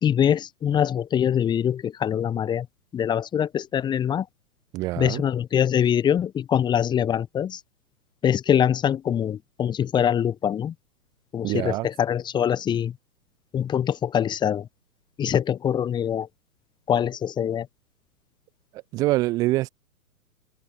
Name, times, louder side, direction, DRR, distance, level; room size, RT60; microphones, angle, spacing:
voice 1, 0.0-2.7 2.9-4.2 5.0-7.6 8.2-10.7 11.3-12.9 13.5-14.7 15.2-16.3 16.9-17.7, left 9 dB, 10° left, 1.1 m, -23 dB
voice 2, 4.7-5.2 11.4-11.9 18.9-19.7, right 18 dB, 10° right, 0.6 m, -24 dB
figure-of-eight pair, 120°, 48 cm